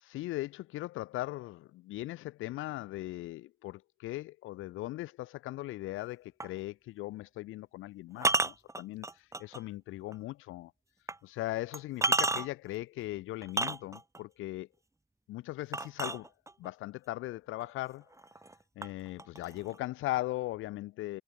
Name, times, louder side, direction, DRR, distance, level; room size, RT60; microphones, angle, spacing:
voice 1, 0.0-9.1 9.4-10.7 11.2-14.7 15.3-16.3 16.6-18.1 18.8-21.2, left 17 dB, 90° left, 0.9 m, -39 dB
sound 1, 6.4-6.6 8.2-9.6 10.1-10.2 11.1-11.2 11.7-12.7 13.4-14.2 15.7-16.7 17.6-17.7 18.1-18.5 18.8-19.8, right 2 dB, 15° right, 2.5 m, -31 dB
cardioid pair, 90°, 20 cm